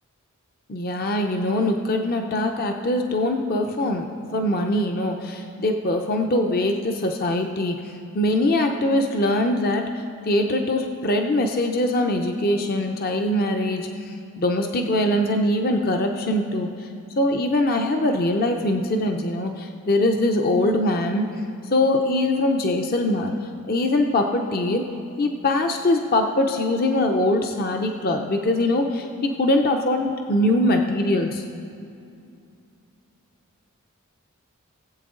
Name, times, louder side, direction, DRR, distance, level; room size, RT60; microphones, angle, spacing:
voice 1, 0.7-4.1 4.3-7.7 8.1-9.8 10.3-13.9 14.4-16.7 17.2-21.3 21.7-23.3 23.7-24.8 25.2-31.4, left 1 dB, 45° left, 4 dB, 0.6 m, -22 dB
20.0 x 7.8 x 3.8 m, 2.5 s
head